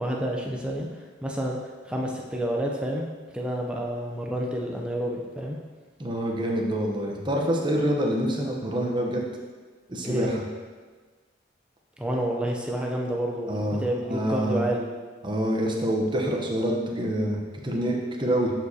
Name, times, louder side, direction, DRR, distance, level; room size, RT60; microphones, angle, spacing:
voice 1, 0.0-1.6 1.9-3.1 3.3-5.6 10.0-10.3 12.0-14.8, right 1 dB, 5° right, -1 dB, 0.5 m, -29 dB
voice 2, 6.0-9.2 9.9-10.4 13.5-13.8 14.1-14.6 15.2-18.5, right 1 dB, 25° right, 0 dB, 0.9 m, -26 dB
11.0 x 4.8 x 2.8 m, 1.4 s
head